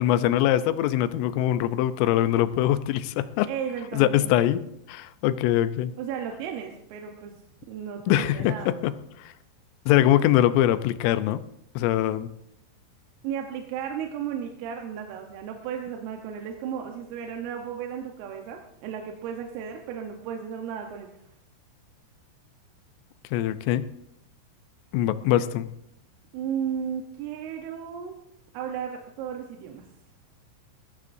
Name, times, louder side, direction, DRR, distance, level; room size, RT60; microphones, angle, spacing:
voice 1, 0.0-3.5 3.9-5.9 8.1-9.3 9.9-11.4 11.8-12.3 23.3-23.9 24.9-25.7, left 12 dB, 85° left, 13 dB, 3.2 m, -23 dB
voice 2, 3.5-4.3 6.0-7.3 7.7-8.7 13.2-21.1 26.3-28.2 28.5-29.9, right 8 dB, 85° right, 3 dB, 3.7 m, -34 dB
21.0 x 15.0 x 2.6 m, 0.77 s
omnidirectional pair, 5.7 m